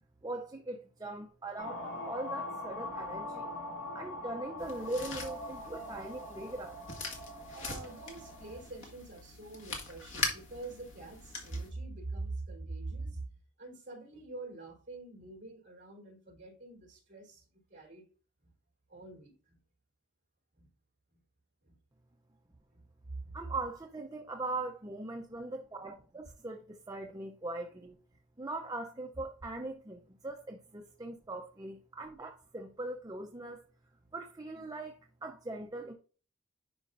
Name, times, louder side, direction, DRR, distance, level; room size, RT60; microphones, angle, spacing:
voice 1, 0.2-3.5 3.9-6.9 23.3-28.0 28.4-33.6 34.1-35.9, right 2 dB, 20° right, 0.5 m, -40 dB
sound 1, 1.6-8.6, left 1 dB, 85° left, 2.3 m, -42 dB
sound 2, 4.6-11.7, left 3 dB, 65° left, 1.8 m, -42 dB
voice 2, 7.5-13.3 13.6-18.1 18.4-18.5 18.9-19.6 20.5-20.7 21.6-21.7 22.7-22.8 23.1-23.4 34.0-34.1, right 3 dB, 40° right, 3.6 m, -44 dB
11.0 x 5.0 x 2.5 m
head